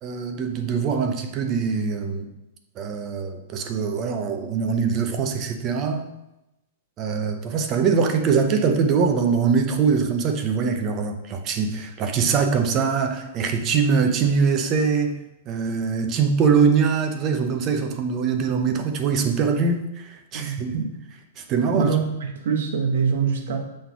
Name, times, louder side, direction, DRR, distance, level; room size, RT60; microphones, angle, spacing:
voice 1, 0.0-2.3 2.8-6.1 7.0-15.2 15.5-20.7 21.4-22.0, right 5 dB, 25° right, 5 dB, 0.7 m, -23 dB
voice 2, 20.3-20.9 21.7-23.6, right 6 dB, 65° right, 2 dB, 1.3 m, -24 dB
6.5 x 3.9 x 5.6 m, 0.90 s
supercardioid pair, 175°, 0 cm